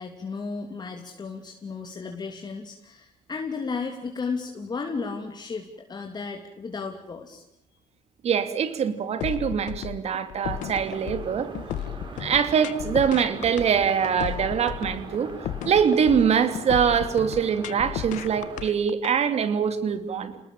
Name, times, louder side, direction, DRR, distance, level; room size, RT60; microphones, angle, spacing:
voice 1, 0.0-7.4, left 4 dB, 35° left, 3 dB, 3.2 m, -34 dB
voice 2, 8.2-11.5 12.2-15.3 15.6-20.4, right 7 dB, 55° right, 10 dB, 3.1 m, -23 dB
sound 1, 9.2-19.1, left 11 dB, 80° left, 1.6 m, -34 dB
sound 2, 10.4-18.6, right 3 dB, 40° right, 6.9 m, -41 dB
29.5 x 19.5 x 9.0 m, 0.80 s
cardioid pair, 100°, 13 cm